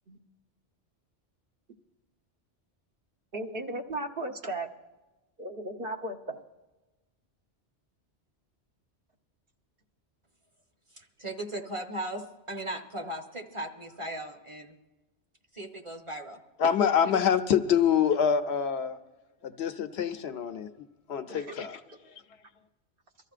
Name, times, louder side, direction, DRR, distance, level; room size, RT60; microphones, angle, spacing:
voice 1, 3.3-4.7 5.4-6.4 21.3-21.5, right 1 dB, 55° right, 3 dB, 1.1 m, -35 dB
voice 2, 10.9-14.8 15.5-16.4, right 1 dB, 30° right, 2 dB, 1.1 m, -37 dB
voice 3, 16.6-19.0 19.4-20.7 21.1-21.8, left 8 dB, 70° left, 8 dB, 0.9 m, -25 dB
24.0 x 14.0 x 2.5 m, 1.1 s
omnidirectional pair, 1.2 m